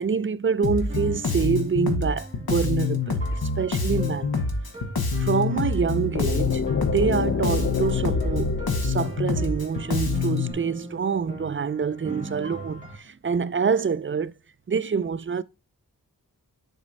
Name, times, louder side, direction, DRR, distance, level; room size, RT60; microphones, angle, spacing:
voice 1, 0.0-4.3 5.2-8.5 8.8-14.3 14.7-15.4, right 6 dB, 35° right, 0.4 m, -26 dB
Bass guitar, 0.6-10.5, left 4 dB, 80° left, 1.1 m, -26 dB
sound 1, 0.8-13.0, right 1 dB, 20° right, 1.9 m, -40 dB
sound 2, 6.1-10.0, left 5 dB, 45° left, 0.6 m, -28 dB
6.7 x 4.2 x 4.0 m
cardioid pair, 40°, 36 cm